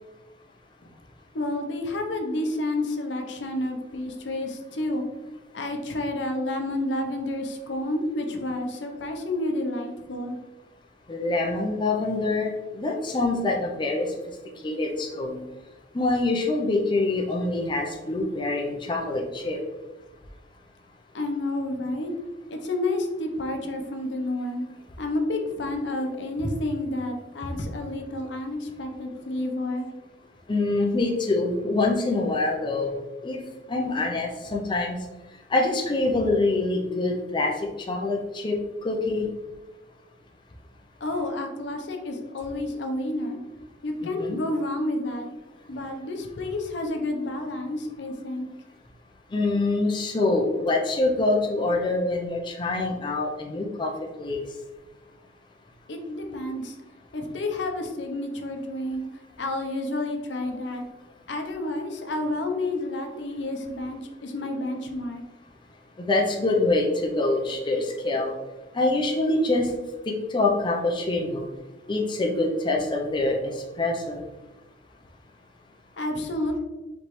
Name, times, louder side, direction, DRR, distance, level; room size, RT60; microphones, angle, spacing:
voice 1, 1.3-5.0 5.5-10.4 21.1-22.1 22.5-24.7 25.0-29.9 41.0-43.4 43.8-45.3 45.7-48.5 55.9-56.7 57.1-59.0 59.4-60.8 61.3-65.2 76.0-76.6, left 1 dB, 70° left, 4 dB, 0.7 m, -30 dB
voice 2, 11.1-14.1 14.6-15.4 15.9-19.6 27.5-27.6 30.5-33.4 33.7-35.0 35.5-37.5 37.9-39.3 44.0-44.4 49.3-53.9 54.2-54.4 66.0-68.3 68.7-69.7 70.1-71.4 71.9-74.2, left 2 dB, 25° left, 0 dB, 0.5 m, -25 dB
5.1 x 3.1 x 3.0 m, 1.1 s
head